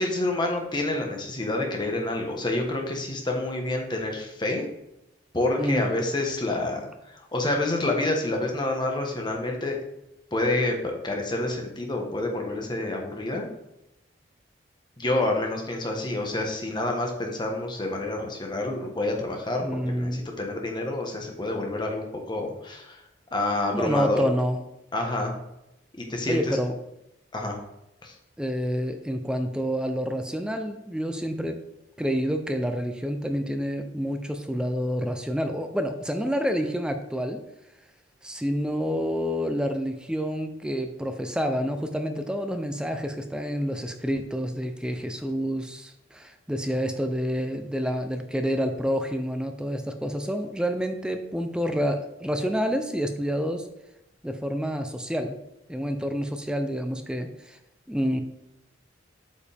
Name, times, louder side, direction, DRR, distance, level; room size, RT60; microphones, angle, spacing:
voice 1, 0.0-4.7 5.3-9.8 10.3-13.5 15.0-23.0 23.3-24.3 24.9-25.4 26.0-26.6 27.3-27.6 28.0-28.1, left 2 dB, 25° left, 2 dB, 1.2 m, -28 dB
voice 2, 5.6-5.9 19.6-20.2 23.7-24.6 26.3-26.7 28.4-31.6 32.0-37.4 38.2-53.7 54.2-55.4 55.7-57.6 57.9-58.2, equal, 5° right, 6 dB, 0.5 m, -28 dB
8.5 x 5.2 x 3.5 m, 0.86 s
head